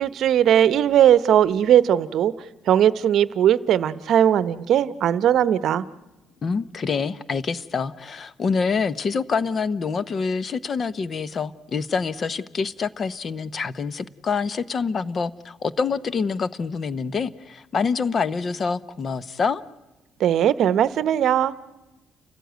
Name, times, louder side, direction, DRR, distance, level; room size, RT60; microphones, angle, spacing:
voice 1, 0.0-2.3 2.7-5.8 20.2-21.5, right 10 dB, 60° right, 16 dB, 0.8 m, -19 dB
voice 2, 6.4-19.6, left 5 dB, 35° left, 18 dB, 0.8 m, -26 dB
30.0 x 14.5 x 9.2 m, 1.0 s
cardioid pair, 135°, 0 cm